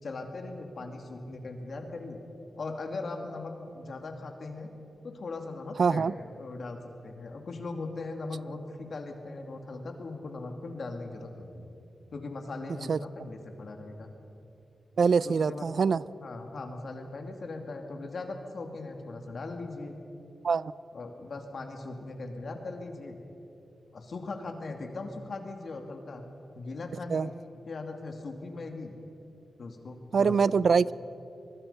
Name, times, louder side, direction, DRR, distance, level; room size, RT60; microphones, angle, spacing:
voice 1, 0.0-2.2 2.5-4.7 5.0-11.7 12.1-14.1 15.2-15.7 16.2-19.9 20.9-23.2 23.9-26.2 26.5-27.3 27.7-28.9 29.6-30.4, left 3 dB, 60° left, 4 dB, 2.5 m, -39 dB
voice 2, 5.8-6.1 12.9-13.0 15.0-16.0 20.4-20.7 27.1-27.3 30.1-30.9, right 5 dB, 65° right, 19 dB, 0.4 m, -24 dB
24.5 x 21.0 x 5.7 m, 2.9 s
wide cardioid pair, 105°, 0 cm